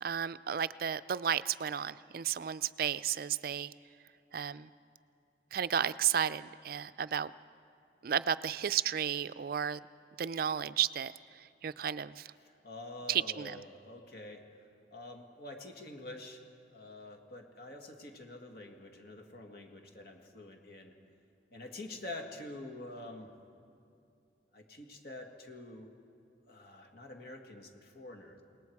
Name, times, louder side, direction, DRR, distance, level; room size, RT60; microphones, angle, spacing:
voice 1, 0.0-3.7 4.3-4.7 5.5-7.3 8.0-9.8 10.2-12.3 13.1-13.6, right 9 dB, 55° right, 15 dB, 0.4 m, -33 dB
voice 2, 12.4-14.4 14.9-16.4 16.7-20.9 21.5-23.3 24.5-25.9 26.5-28.4, left 2 dB, 55° left, 3 dB, 2.0 m, -47 dB
29.0 x 19.0 x 4.7 m, 2.5 s
head